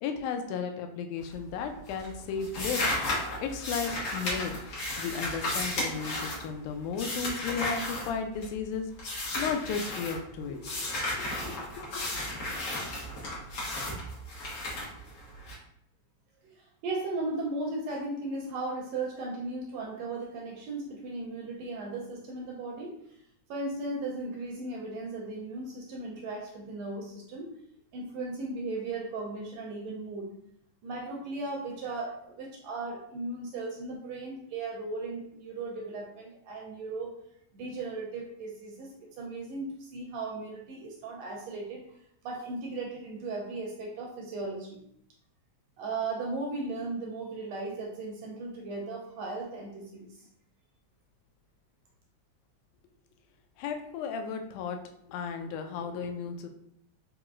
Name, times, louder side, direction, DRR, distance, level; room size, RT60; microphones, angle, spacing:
voice 1, 0.0-3.0 3.4-4.6 5.0-12.2 53.6-54.8 55.1-56.5, left 6 dB, 90° left, 5 dB, 2.0 m, -35 dB
sound 1, 1.2-1.6 1.9-8.6 9.0-10.2 10.6-15.5, left 1 dB, 55° left, 1.4 m, -34 dB
voice 2, 16.4-22.9 23.5-27.5 27.9-30.3 30.8-37.1 37.5-41.8 42.2-44.8 45.8-50.3, right 2 dB, 80° right, -1 dB, 1.6 m, -36 dB
4.9 x 3.0 x 2.3 m, 0.73 s
omnidirectional pair, 3.4 m